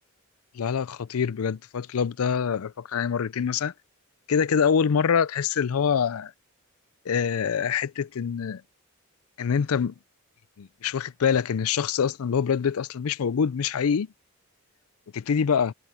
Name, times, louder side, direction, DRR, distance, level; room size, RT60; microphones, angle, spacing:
voice 1, 0.5-3.7 4.3-6.3 7.1-8.6 9.4-9.9 10.6-14.1 15.1-15.7, left 7 dB, 80° left, 0.5 m, -25 dB
head